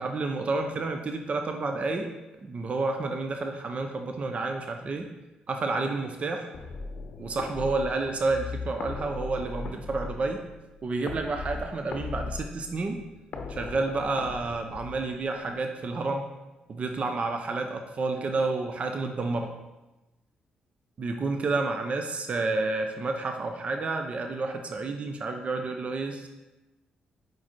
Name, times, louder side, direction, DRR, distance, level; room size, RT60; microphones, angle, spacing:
voice 1, 0.0-2.1 2.4-5.1 5.5-6.5 7.2-10.4 10.8-13.0 13.5-16.3 16.7-19.6 21.0-26.3, right 3 dB, 45° right, 4 dB, 0.6 m, -30 dB
sound 1, 6.5-15.5, left 3 dB, 60° left, 0.6 m, -39 dB
4.8 x 4.7 x 4.4 m, 1.0 s
cardioid pair, 75°, 3 cm